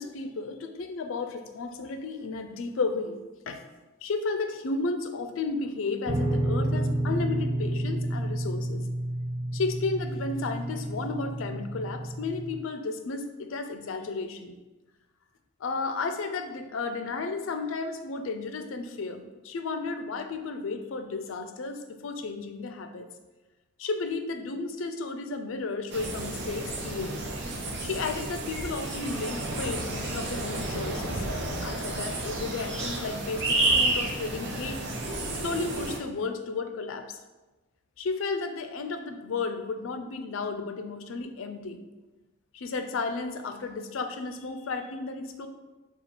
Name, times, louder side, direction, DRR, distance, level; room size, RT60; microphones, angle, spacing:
voice 1, 0.0-3.2 3.5-3.6 4.0-8.9 9.5-14.6 15.6-23.1 23.8-27.3 27.8-31.2 31.6-35.1 35.4-37.2 38.0-41.8 42.5-45.5, left 3 dB, 80° left, 8 dB, 0.4 m, -33 dB
sound 1, 6.1-12.6, right 1 dB, 20° right, 0.4 m, -30 dB
sound 2, 25.9-36.0, right 2 dB, 60° right, 0.6 m, -31 dB
4.1 x 2.3 x 4.3 m, 1.1 s
head